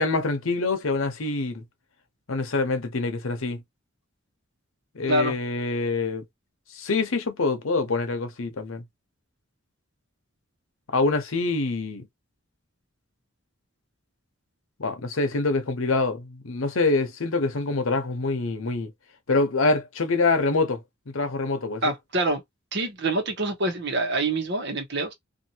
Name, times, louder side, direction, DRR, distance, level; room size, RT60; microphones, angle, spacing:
voice 1, 0.0-1.6 2.3-3.6 4.9-6.2 6.7-8.8 10.9-12.1 14.8-18.9 19.3-20.8 21.1-21.8, left 3 dB, 90° left, 0.9 m, -25 dB
voice 2, 21.8-22.4 22.7-25.1, right 2 dB, 55° right, 1.1 m, -26 dB
2.7 x 2.6 x 2.8 m
head